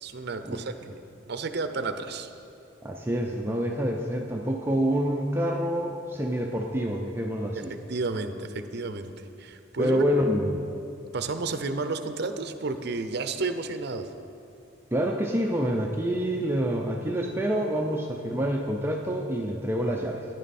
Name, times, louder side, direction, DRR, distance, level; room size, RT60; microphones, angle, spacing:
voice 1, 0.0-1.0 1.3-2.3 7.5-7.6 7.9-9.1 9.4-10.0 11.1-14.1, right 3 dB, 55° right, 9 dB, 0.6 m, -31 dB
voice 2, 2.8-7.7 9.8-10.6 14.9-20.2, equal, 10° right, 0 dB, 0.5 m, -27 dB
12.5 x 10.5 x 4.2 m, 2.6 s
head